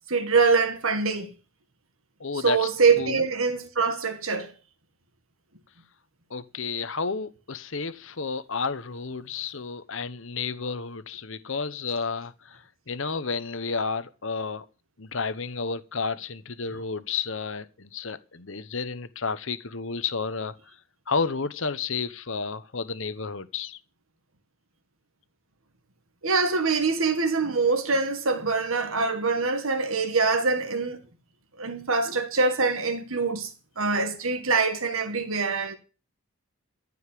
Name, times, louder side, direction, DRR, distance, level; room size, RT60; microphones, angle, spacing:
voice 1, 0.1-1.3 2.4-4.5 26.2-31.0 31.6-33.5 33.8-35.8, right 4 dB, 70° right, 1.9 m, -24 dB
voice 2, 2.2-2.7 3.0-3.2 6.3-14.6 15.0-20.8 21.1-23.8, left 4 dB, 60° left, 1.0 m, -31 dB
14.5 x 5.6 x 8.4 m
head